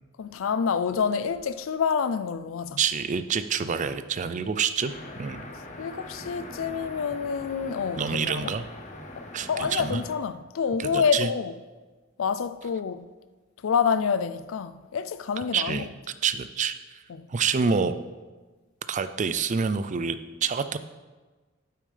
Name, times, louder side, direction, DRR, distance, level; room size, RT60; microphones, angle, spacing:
voice 1, 0.2-2.8 5.8-8.5 9.2-11.5 12.2-13.1 13.6-15.8 17.1-17.3, left 6 dB, 75° left, 0.4 m, -27 dB
voice 2, 2.8-5.5 8.0-8.6 9.3-10.0 10.8-11.3 15.5-15.9 16.2-17.0 17.3-17.9 18.9-20.8, right 6 dB, 35° right, 0.4 m, -27 dB
sound 1, 4.9-10.2, left 1 dB, 35° left, 1.0 m, -42 dB
8.7 x 8.7 x 3.3 m
head